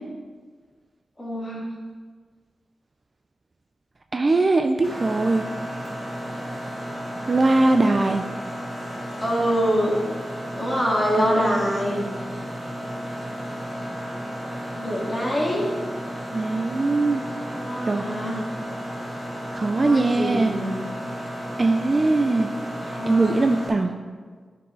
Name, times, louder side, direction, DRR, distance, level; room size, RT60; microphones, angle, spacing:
voice 1, 1.2-1.7 9.2-10.0 10.5-12.0 14.7-15.6 17.5-18.4 19.7-20.7 22.8-23.4, equal, 20° left, -5 dB, 2.1 m, -25 dB
voice 2, 4.1-5.4 7.3-8.2 11.2-11.3 16.3-17.2 17.9-18.1 19.5-20.6 21.6-22.5 23.1-23.9, right 2 dB, 30° right, 5 dB, 0.4 m, -21 dB
Mechanisms, 4.8-23.7, equal, 5° right, 1.7 m, -33 dB
11.5 x 4.7 x 3.8 m, 1.5 s
wide cardioid pair, 135°, 0 cm